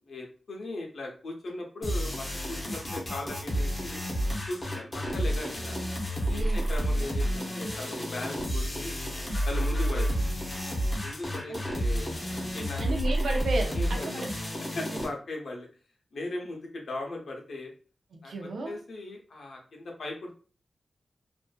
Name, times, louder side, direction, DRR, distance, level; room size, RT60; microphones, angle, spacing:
voice 1, 0.1-4.0 4.5-5.8 6.3-9.1 9.4-10.1 11.0-12.8 13.7-14.1 14.7-15.7 16.1-17.7 18.2-18.3 18.6-20.3, left 2 dB, 70° left, 1 dB, 0.7 m, -38 dB
sound 1, 1.8-15.1, equal, 25° left, 0.7 m, -30 dB
voice 2, 6.3-6.7 11.4-11.6 12.8-14.3 14.7-15.0 18.1-18.8, right 2 dB, 80° right, 2 dB, 0.6 m, -33 dB
2.5 x 2.5 x 2.2 m, 0.38 s
wide cardioid pair, 150°, 0 cm